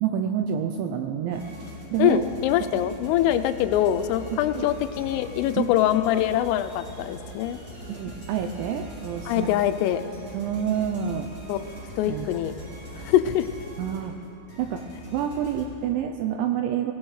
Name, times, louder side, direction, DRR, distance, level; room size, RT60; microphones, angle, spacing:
voice 1, 0.0-1.5 1.9-2.3 4.5-4.7 5.6-5.7 7.9-9.5 10.3-11.3 12.1-12.3 13.8-14.1 14.6-16.9, right 9 dB, 85° right, 5 dB, 2.6 m, -28 dB
sound 1, 1.3-15.7, equal, 20° right, 3.9 m, -41 dB
voice 2, 2.0-7.6 9.3-10.0 11.5-11.6 12.0-12.5 13.0-13.5, left 11 dB, 90° left, 10 dB, 3.2 m, -23 dB
24.0 x 17.0 x 3.2 m, 2.8 s
omnidirectional pair, 5.7 m